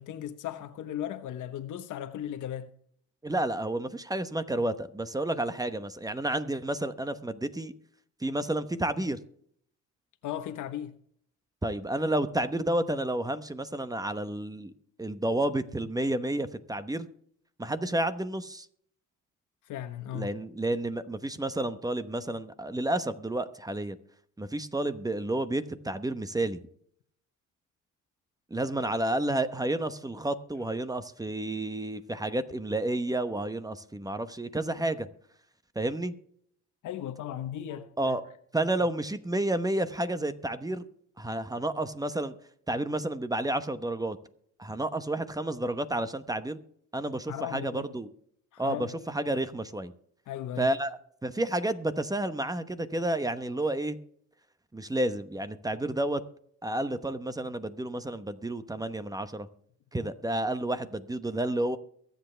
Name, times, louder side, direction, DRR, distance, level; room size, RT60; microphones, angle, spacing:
voice 1, 0.0-2.7 10.2-11.0 19.7-20.3 36.8-38.2 47.3-47.9 48.5-49.0 50.3-50.7, left 10 dB, 80° left, 1.2 m, -37 dB
voice 2, 3.2-7.7 8.2-9.2 11.6-14.7 15.0-17.1 17.6-18.7 20.1-24.0 24.4-26.6 28.5-35.1 35.7-36.1 38.0-38.2 38.5-40.8 41.2-42.3 42.7-44.2 44.6-46.6 46.9-48.1 48.6-49.9 50.6-54.0 54.7-56.2 56.6-59.5 59.9-61.8, right 1 dB, 10° right, 1.0 m, -30 dB
23.0 x 8.0 x 3.4 m
cardioid pair, 90°, 30 cm